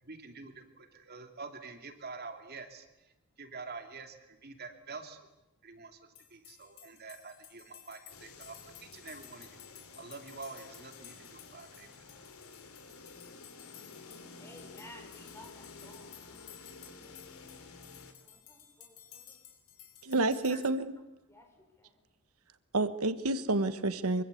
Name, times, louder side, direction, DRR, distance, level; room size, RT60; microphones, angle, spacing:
voice 1, 0.0-5.3 5.6-6.0 6.3-9.6 10.0-12.0, right 4 dB, 45° right, 6 dB, 2.7 m, -47 dB
sound 1, 6.1-20.7, left 10 dB, 75° left, 4.4 m, -55 dB
sound 2, 8.1-18.1, left 4 dB, 90° left, 3.2 m, -51 dB
voice 2, 14.4-17.6 18.2-19.4 20.5-20.6 21.3-21.9, left 1 dB, 10° left, 4 dB, 5.1 m, -56 dB
voice 3, 20.0-21.0 22.7-24.2, right 2 dB, 90° right, 12 dB, 1.3 m, -29 dB
24.5 x 24.0 x 8.4 m, 0.93 s
head